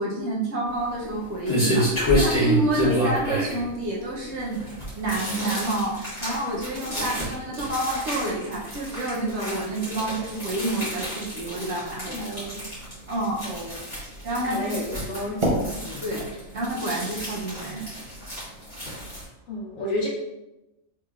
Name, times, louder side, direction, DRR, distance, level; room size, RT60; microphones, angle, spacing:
voice 1, 0.0-4.6 5.0-12.4 13.1-13.5 14.2-14.8 16.0-16.3 16.5-17.9, right 1 dB, 60° right, -3 dB, 1.0 m, -28 dB
sound 1, 0.7-19.2, equal, 20° left, 1.6 m, -29 dB
sound 2, 10.3-17.5, right 1 dB, 30° right, 0.6 m, -35 dB
voice 2, 12.1-12.6 13.4-13.7 14.4-15.4 15.8-16.0 19.5-20.1, left 1 dB, 75° left, -3 dB, 1.4 m, -31 dB
3.8 x 3.1 x 2.4 m, 0.96 s
omnidirectional pair, 1.4 m